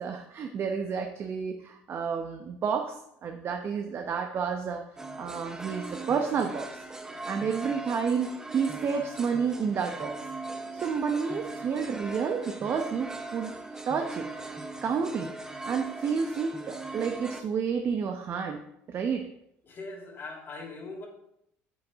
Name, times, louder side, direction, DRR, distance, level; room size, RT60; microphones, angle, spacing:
voice 1, 0.0-3.0 3.2-4.8 5.1-6.8 7.3-10.1 10.7-13.6 13.9-14.3 14.8-15.3 15.6-18.6 18.9-19.3, right 6 dB, 45° right, 4 dB, 0.9 m, -30 dB
sound 1, 5.0-17.4, right 2 dB, 10° right, 1.1 m, -40 dB
voice 2, 19.6-21.1, left 3 dB, 40° left, 0 dB, 3.2 m, -41 dB
8.3 x 7.9 x 3.6 m, 0.76 s
supercardioid pair, 80°, 6 cm